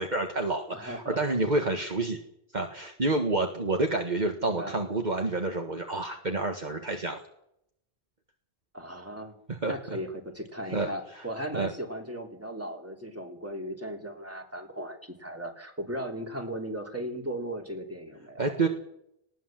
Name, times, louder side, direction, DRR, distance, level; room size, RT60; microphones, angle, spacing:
voice 1, 0.0-2.2 2.5-7.2 9.5-9.7 10.7-10.9 11.5-11.7 18.4-18.7, right 2 dB, 45° right, 3 dB, 1.8 m, -28 dB
voice 2, 0.7-1.4 4.4-4.8 8.7-9.3 9.7-18.5, right 1 dB, 15° right, 2 dB, 3.3 m, -37 dB
19.5 x 17.5 x 7.6 m, 0.76 s
omnidirectional pair, 1.0 m